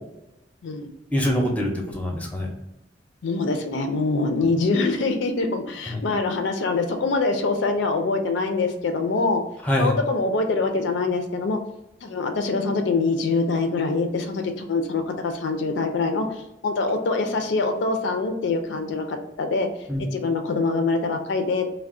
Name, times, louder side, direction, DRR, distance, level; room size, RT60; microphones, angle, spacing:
voice 1, 1.1-2.5 4.4-4.5 5.9-6.0 9.6-9.9 19.9-20.0, equal, 10° left, 0 dB, 0.5 m, -24 dB
voice 2, 3.2-9.4 9.8-11.6 12.0-19.7 20.1-21.7, left 3 dB, 75° left, 5 dB, 0.4 m, -24 dB
2.3 x 2.0 x 3.5 m, 0.91 s
head